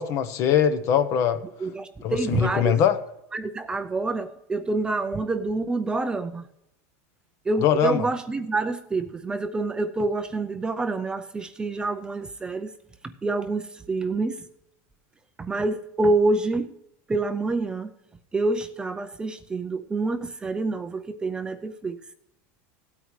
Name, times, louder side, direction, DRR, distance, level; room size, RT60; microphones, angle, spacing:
voice 1, 0.0-1.4 2.0-3.0 7.6-8.0, left 9 dB, 40° left, 12 dB, 0.9 m, -22 dB
voice 2, 1.6-2.8 3.3-6.5 7.5-12.7 13.0-14.4 15.4-16.7 17.1-17.9 18.3-22.0, right 3 dB, 10° right, 8 dB, 0.5 m, -27 dB
17.0 x 8.9 x 3.2 m, 0.82 s
supercardioid pair, 160°, 8 cm